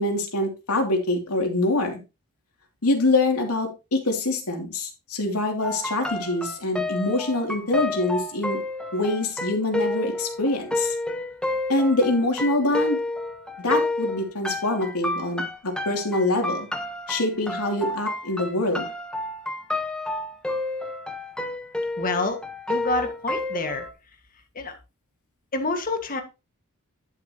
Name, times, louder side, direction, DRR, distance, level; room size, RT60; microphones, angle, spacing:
voice 1, 0.0-2.0 2.8-8.6 8.9-10.9 11.7-13.0 13.6-16.7 17.1-18.9, left 2 dB, 85° left, 2 dB, 2.8 m, -25 dB
sound 1, 5.6-23.9, left 2 dB, 5° left, 1.1 m, -30 dB
voice 2, 22.0-22.4 22.7-23.9 24.6-24.8 25.5-26.2, left 3 dB, 40° left, 5 dB, 1.8 m, -27 dB
11.0 x 7.0 x 3.0 m, 0.27 s
head